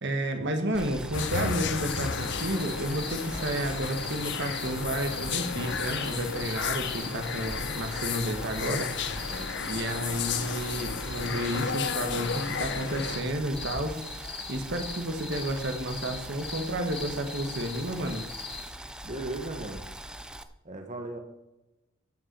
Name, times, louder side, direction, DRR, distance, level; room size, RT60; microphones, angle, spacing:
voice 1, 0.0-9.4 9.6-18.2, right 1 dB, 55° right, 6 dB, 1.4 m, -31 dB
Boiling, 0.7-20.4, right 1 dB, 5° right, 0.5 m, -41 dB
sound 1, 1.1-13.2, left 6 dB, 55° left, 0.7 m, -33 dB
sound 2, 1.9-18.7, left 4 dB, 25° left, 2.4 m, -42 dB
voice 2, 9.1-9.8 19.0-19.9 20.6-21.2, right 2 dB, 35° right, 4 dB, 1.3 m, -38 dB
12.0 x 5.7 x 7.9 m, 0.96 s
head